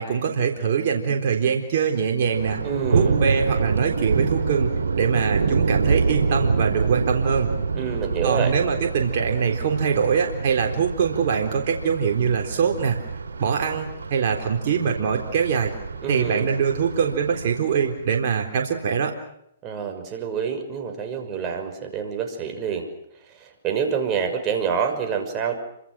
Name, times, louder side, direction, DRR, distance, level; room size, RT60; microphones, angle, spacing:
voice 1, 0.0-2.6 2.9-7.5 8.2-13.0 13.4-15.7 16.1-19.1, right 6 dB, 55° right, 2 dB, 3.9 m, -23 dB
Thunder, 2.2-18.1, right 4 dB, 85° right, 4.3 m, -26 dB
voice 2, 2.6-3.2 7.7-8.5 16.0-16.5 19.6-22.9 23.3-25.6, right 7 dB, 30° right, 5 dB, 6.1 m, -27 dB
28.5 x 25.5 x 6.3 m, 0.76 s
hypercardioid pair, 135°, 0 cm